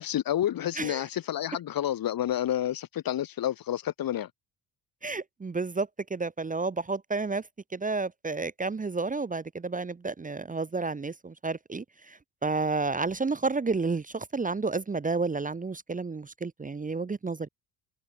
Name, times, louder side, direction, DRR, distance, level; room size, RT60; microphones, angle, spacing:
voice 1, 0.0-4.3, left 11 dB, 45° left, 1.1 m, -29 dB
voice 2, 5.0-7.4 7.7-17.5, right 3 dB, 15° right, 0.9 m, -31 dB
supercardioid pair, 90°, 46 cm